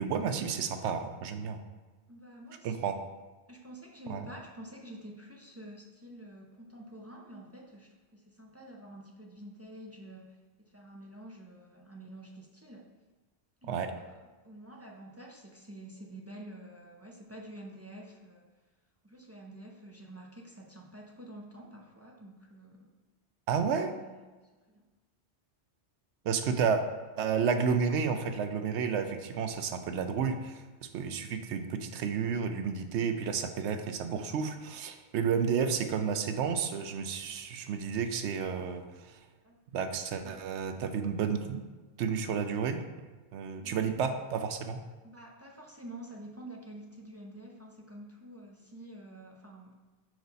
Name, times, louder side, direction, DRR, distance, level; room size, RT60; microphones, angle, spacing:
voice 1, 0.0-1.6 2.6-2.9 4.1-4.2 13.7-13.9 23.5-23.9 26.2-26.8 27.2-30.6 30.9-39.2 39.7-41.6 42.0-42.8 43.3-44.8, right 6 dB, 85° right, 8 dB, 0.9 m, -31 dB
voice 2, 2.1-2.9 3.5-12.9 13.6-18.5 19.0-22.9 23.9-24.3 24.7-24.8 39.4-39.6 40.2-40.4 43.6-44.0 45.0-49.7, right 1 dB, 20° right, -1 dB, 0.4 m, -48 dB
5.2 x 4.7 x 4.0 m, 1.3 s
omnidirectional pair, 1.1 m